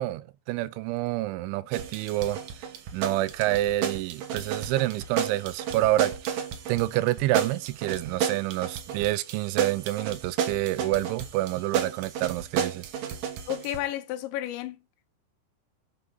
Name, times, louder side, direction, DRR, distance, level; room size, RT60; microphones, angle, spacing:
voice 1, 0.0-2.4 2.9-12.9, right 16 dB, 85° right, 2.9 m, -28 dB
sound 1, 1.7-13.8, right 8 dB, 60° right, 2.5 m, -32 dB
voice 2, 13.5-14.8, left 13 dB, 80° left, 3.1 m, -32 dB
8.0 x 6.3 x 5.4 m
omnidirectional pair, 5.4 m